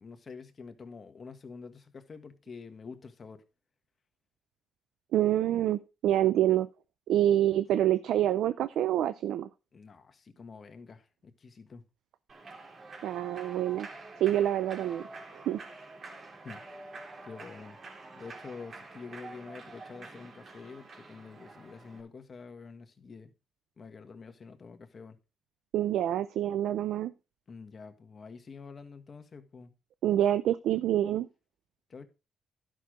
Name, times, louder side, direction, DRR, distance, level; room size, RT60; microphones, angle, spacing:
voice 1, 0.0-3.4 9.7-11.8 16.4-16.6 17.2-17.8 18.1-23.3 23.8-25.2 27.5-29.7 31.9-32.1, left 5 dB, 40° left, 1.6 m, -47 dB
voice 2, 5.1-6.7 7.1-9.5 13.0-13.9 14.2-15.0 15.3-15.6 25.7-27.1 30.0-31.3, right 12 dB, 80° right, 0.5 m, -27 dB
Human voice / Clapping / Cheering, 12.3-22.0, right 3 dB, 45° right, 3.2 m, -47 dB
11.5 x 6.4 x 5.0 m
cardioid pair, 90°, 0 cm